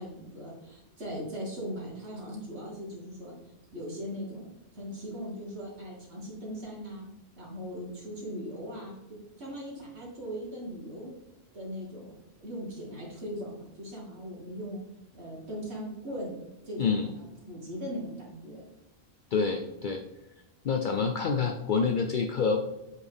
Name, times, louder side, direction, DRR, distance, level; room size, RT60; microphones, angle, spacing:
voice 1, 0.0-3.3 3.7-4.5 4.7-7.1 7.4-9.0 9.4-11.1 11.5-12.2 12.4-14.8 15.1-16.3 16.6-18.6, equal, 90° right, -4 dB, 1.8 m, -39 dB
voice 2, 16.8-17.1 19.3-20.0 20.6-22.6, left 5 dB, 60° left, 4 dB, 0.6 m, -27 dB
7.9 x 4.2 x 3.5 m, 0.91 s
omnidirectional pair, 1.1 m